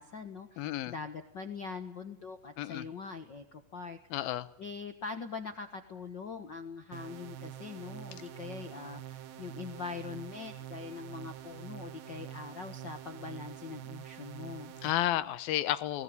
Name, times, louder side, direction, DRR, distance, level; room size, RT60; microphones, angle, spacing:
voice 1, 0.0-4.0 4.6-14.7, left 5 dB, 65° left, 7 dB, 1.1 m, -43 dB
voice 2, 0.6-0.9 2.6-2.9 4.1-4.5 14.8-16.0, left 13 dB, 80° left, 14 dB, 2.8 m, -32 dB
sound 1, 6.9-14.9, right 11 dB, 75° right, 3.2 m, -46 dB
22.0 x 20.0 x 9.6 m, 0.87 s
omnidirectional pair, 4.2 m